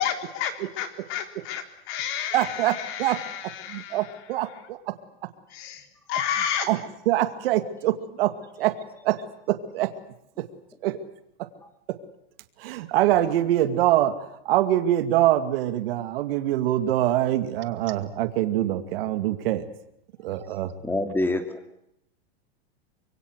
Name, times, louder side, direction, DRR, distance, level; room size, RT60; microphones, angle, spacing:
voice 1, 0.0-4.1 5.5-6.7, left 9 dB, 40° left, 7 dB, 3.9 m, -31 dB
voice 2, 2.3-4.9 6.7-8.8 9.0-9.9 10.4-10.5 10.8-11.0 11.9-12.0 12.6-19.7 20.2-20.7, right 13 dB, 65° right, 10 dB, 2.4 m, -24 dB
voice 3, 20.8-21.8, left 2 dB, 5° left, 8 dB, 2.7 m, -27 dB
25.5 x 23.0 x 8.1 m, 0.78 s
supercardioid pair, 140°, 31 cm